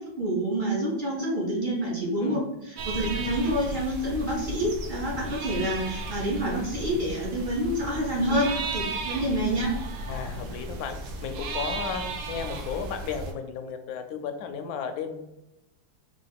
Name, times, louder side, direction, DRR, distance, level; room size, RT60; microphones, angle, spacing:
voice 1, 0.2-9.7, right 1 dB, 55° right, -4 dB, 0.5 m, -28 dB
sound 1, 2.8-13.3, right 2 dB, 80° right, 1.3 m, -35 dB
voice 2, 10.1-15.3, left 6 dB, 70° left, 6 dB, 0.9 m, -34 dB
3.9 x 2.4 x 3.4 m, 0.93 s
omnidirectional pair, 2.0 m